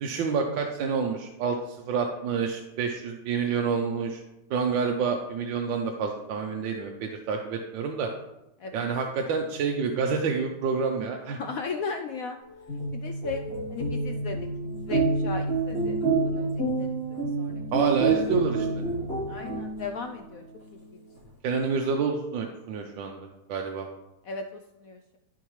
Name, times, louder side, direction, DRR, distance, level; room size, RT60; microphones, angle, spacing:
voice 1, 0.0-4.2 4.5-8.1 8.7-11.4 17.7-18.8 21.4-23.9, right 5 dB, 85° right, 2 dB, 1.5 m, -28 dB
voice 2, 11.4-12.4 12.9-13.4 13.7-14.4 14.8-17.0 17.4-18.2 19.3-20.4 20.9-21.0 24.2-25.2, left 4 dB, 80° left, 5 dB, 0.7 m, -37 dB
sound 1, 12.5-20.2, right 3 dB, 50° left, 2.6 m, -28 dB
13.0 x 4.9 x 3.1 m, 0.94 s
omnidirectional pair, 2.0 m